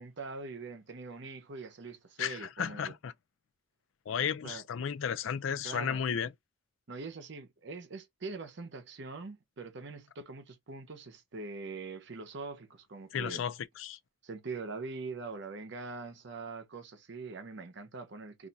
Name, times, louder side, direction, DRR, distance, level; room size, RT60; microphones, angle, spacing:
voice 1, 0.0-2.9 4.4-4.6 5.6-6.0 6.9-13.4 14.2-18.5, right 3 dB, 60° right, 0.7 m, -43 dB
voice 2, 2.2-3.1 4.1-6.3 13.1-14.0, left 7 dB, 75° left, 0.4 m, -34 dB
2.5 x 2.3 x 3.9 m
head